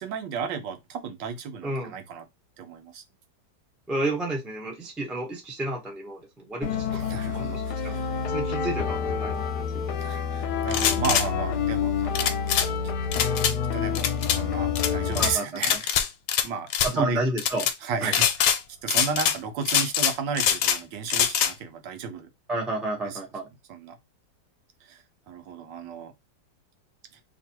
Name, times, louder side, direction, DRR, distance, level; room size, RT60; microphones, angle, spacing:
voice 1, 0.0-2.2 2.6-3.0 6.9-8.2 10.0-12.3 13.7-16.0 16.4-17.2 17.8-18.2 18.8-22.3 23.0-23.2 23.7-24.0 24.8-26.1 27.1-27.2, right 6 dB, 80° right, 1.5 m, -34 dB
voice 2, 1.6-1.9 3.9-8.0 8.3-9.5 9.9-10.0 15.1-15.6 16.8-17.7 18.0-18.1 22.5-23.5, right 1 dB, ahead, 0.5 m, -31 dB
sound 1, 6.6-15.4, left 6 dB, 70° left, 1.1 m, -28 dB
sound 2, 10.7-11.3 12.2-12.7 13.1-13.5 14.0-14.4 14.8-15.3 15.6-16.5 16.7-16.9 17.4-17.7 18.1-18.6 18.9-19.4 19.7-20.8 21.1-21.5, left 9 dB, 90° left, 1.3 m, -23 dB
3.0 x 2.5 x 4.4 m
omnidirectional pair, 2.0 m